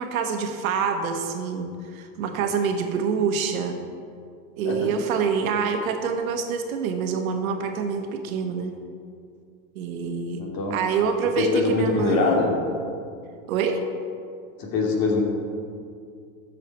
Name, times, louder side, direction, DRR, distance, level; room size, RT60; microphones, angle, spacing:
voice 1, 0.0-3.8 4.6-8.7 9.7-12.4 13.5-13.9, right 6 dB, 80° right, 5 dB, 1.4 m, -26 dB
voice 2, 10.4-10.8 11.4-12.6 14.6-15.2, left 3 dB, 55° left, -1 dB, 2.7 m, -23 dB
13.5 x 7.6 x 4.3 m, 2.3 s
hypercardioid pair, 100°, 41 cm